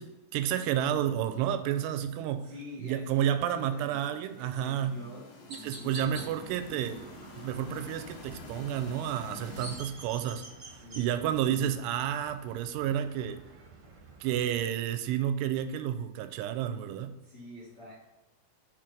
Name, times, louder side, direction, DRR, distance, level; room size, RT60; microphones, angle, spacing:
voice 1, 0.0-2.5 2.8-5.0 5.6-7.1 7.4-10.4 11.0-13.4 14.2-17.2, right 10 dB, 90° right, 10 dB, 2.7 m, -30 dB
voice 2, 2.4-4.1 4.3-6.4 10.6-11.8 17.2-18.0, left 1 dB, 70° left, -8 dB, 1.0 m, -48 dB
sound 1, 3.4-9.8, left 3 dB, 85° left, 3.6 m, -48 dB
Chirp tweet, 4.6-4.7 5.5-6.2 9.2-11.0, right 1 dB, 30° right, 1.0 m, -44 dB
sound 2, 6.0-14.6, right 3 dB, 65° right, 2.3 m, -53 dB
6.4 x 4.5 x 3.7 m, 1.0 s
omnidirectional pair, 4.8 m